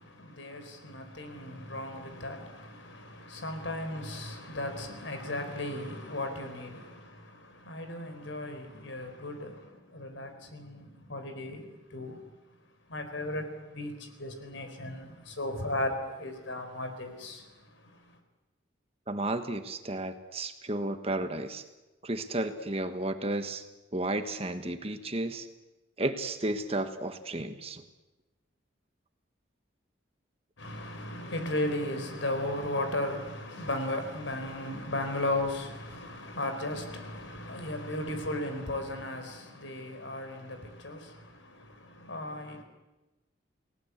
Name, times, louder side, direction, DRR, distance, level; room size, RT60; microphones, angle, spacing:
voice 1, 0.0-12.2 12.9-18.2 30.6-42.6, left 1 dB, 70° left, 4.4 m, -36 dB
voice 2, 19.1-21.6 22.0-25.5 26.0-27.8, right 2 dB, 30° right, 1.5 m, -33 dB
29.5 x 18.5 x 8.3 m
head